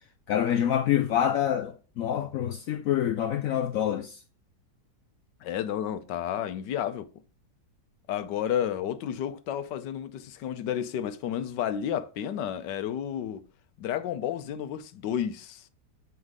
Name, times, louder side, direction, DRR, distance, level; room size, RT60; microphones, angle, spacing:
voice 1, 0.3-4.2, left 10 dB, 70° left, 0.8 m, -26 dB
voice 2, 5.4-7.1 8.1-13.4 13.8-15.6, left 9 dB, 85° left, 1.4 m, -31 dB
8.0 x 5.5 x 3.6 m
omnidirectional pair, 1.8 m